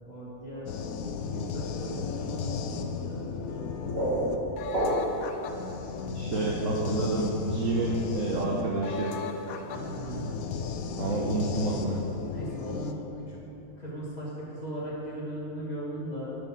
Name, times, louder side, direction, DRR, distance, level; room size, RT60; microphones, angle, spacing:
voice 1, 0.0-0.7 1.2-3.7 4.0-4.4 6.3-6.4 6.7-6.8 9.7-10.4 11.0-11.2 12.3-13.4 13.8-16.4, equal, 30° left, -7 dB, 2.0 m, -38 dB
sound 1, 0.7-12.9, left 5 dB, 80° left, 1.0 m, -35 dB
sound 2, 3.4-5.4, right 1 dB, 45° right, 2.2 m, -29 dB
voice 2, 6.1-9.1 11.0-12.0, right 2 dB, 65° right, -4 dB, 1.2 m, -29 dB
8.2 x 6.7 x 6.1 m, 3.0 s
omnidirectional pair, 1.5 m